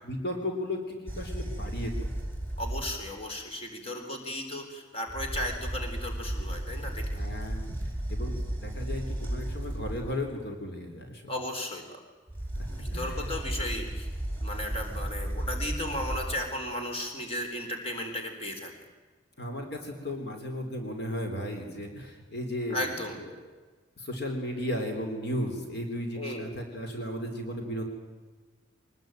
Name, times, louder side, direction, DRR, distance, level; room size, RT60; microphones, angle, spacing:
voice 1, 0.0-2.1 7.0-11.2 12.5-13.4 19.4-23.4 24.0-27.8, left 1 dB, 55° left, 4 dB, 3.6 m, -35 dB
sound 1, 1.1-3.2 5.1-10.3 12.3-16.3, right 1 dB, 10° left, 4.7 m, -34 dB
voice 2, 2.6-7.0 11.3-12.0 12.7-14.1 14.4-18.7 22.7-23.2 26.2-26.5, left 1 dB, 30° left, 3 dB, 4.0 m, -35 dB
23.5 x 20.5 x 9.1 m, 1.3 s
head